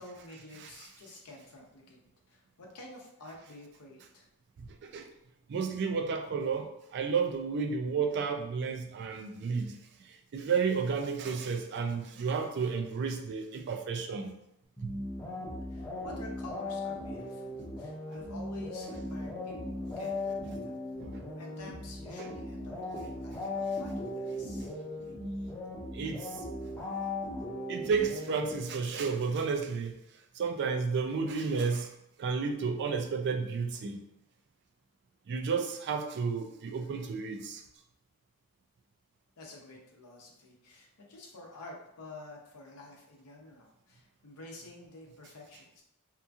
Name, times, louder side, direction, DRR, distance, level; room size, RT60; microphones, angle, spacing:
voice 1, 0.0-2.0 2.3-4.3 15.7-20.8 21.3-24.7 39.4-45.8, left 2 dB, 80° left, -1 dB, 0.7 m, -49 dB
voice 2, 4.6-5.1 5.5-14.4 14.8-14.9 21.0-21.2 22.2-22.3 25.9-26.4 27.7-30.0 30.3-31.9 32.2-34.0 35.3-37.6, right 5 dB, 50° right, 4 dB, 0.3 m, -32 dB
sound 1, 14.8-29.1, left 2 dB, 10° left, 0.6 m, -38 dB
2.9 x 2.5 x 2.3 m, 0.80 s
head